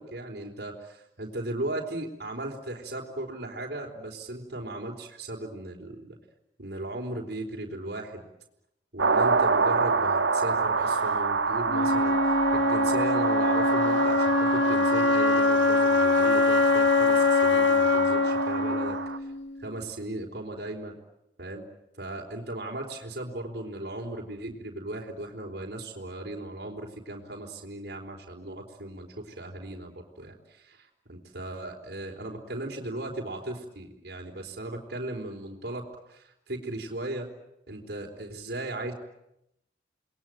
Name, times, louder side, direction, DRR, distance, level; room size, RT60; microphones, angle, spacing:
voice 1, 0.0-6.2 6.6-8.2 8.9-19.0 19.6-20.9 21.4-21.6 22.0-37.3 37.7-38.9, right 1 dB, 65° right, 1 dB, 4.1 m, -37 dB
sound 1, 9.0-19.2, right 4 dB, 90° right, 1.3 m, -27 dB
Wind instrument woodwind instrument, 11.7-19.7, left 3 dB, 85° left, 1.4 m, -23 dB
28.5 x 21.0 x 9.1 m, 0.84 s
head